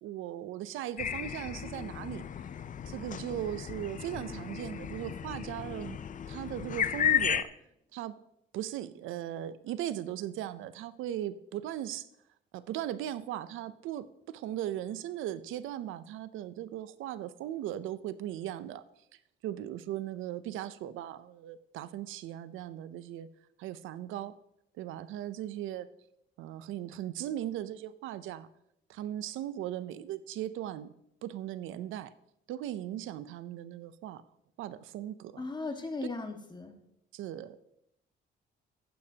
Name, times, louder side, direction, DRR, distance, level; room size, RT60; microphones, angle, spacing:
voice 1, 0.0-2.3 2.9-6.0 6.3-7.5 7.9-8.2 8.5-12.1 12.5-18.8 19.4-23.3 23.6-24.4 24.8-25.9 26.4-28.5 28.9-30.9 31.2-32.1 32.5-34.2 34.6-35.4 37.1-37.6, right 12 dB, 90° right, 15 dB, 0.5 m, -38 dB
sound 1, 1.0-7.4, left 9 dB, 40° left, 0.5 m, -34 dB
voice 2, 35.4-36.7, left 3 dB, 20° left, 4 dB, 1.6 m, -37 dB
14.5 x 8.6 x 2.8 m, 0.79 s
cardioid pair, 90°, 20 cm